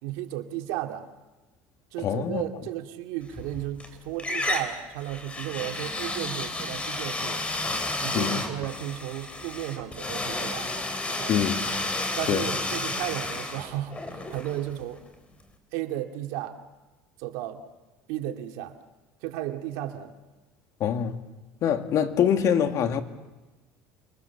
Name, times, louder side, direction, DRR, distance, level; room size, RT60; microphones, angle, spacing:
voice 1, 0.0-1.1 1.9-7.4 8.0-10.7 11.1-11.4 12.2-15.0 15.7-16.6 17.2-17.6 18.1-18.7 19.2-20.1, right 13 dB, 80° right, 2.4 m, -34 dB
voice 2, 2.0-2.4 8.1-8.5 11.3-11.6 12.3-12.5 20.8-21.2 21.6-23.0, left 8 dB, 50° left, 2.1 m, -24 dB
sound 1, 3.3-3.9 4.2-15.1, left 2 dB, 15° left, 3.5 m, -32 dB
29.5 x 22.5 x 7.2 m
cardioid pair, 125°, 7 cm